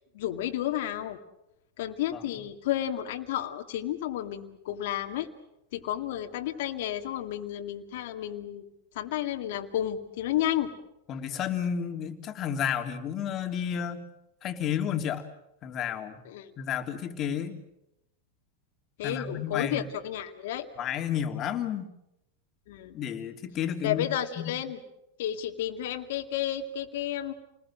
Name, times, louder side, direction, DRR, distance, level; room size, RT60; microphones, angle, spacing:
voice 1, 0.1-1.2 1.8-5.3 5.7-8.6 9.0-10.7 16.3-16.5 19.0-20.7 22.7-23.0 23.8-24.8 25.2-27.3, left 11 dB, 65° left, 6 dB, 2.2 m, -31 dB
voice 2, 11.1-14.0 14.4-15.3 15.6-16.2 16.6-17.6 19.0-19.8 20.8-21.9 22.9-24.1 24.4-24.5, left 8 dB, 35° left, 6 dB, 3.2 m, -31 dB
29.0 x 21.0 x 7.6 m, 0.85 s
hypercardioid pair, 105°, 0 cm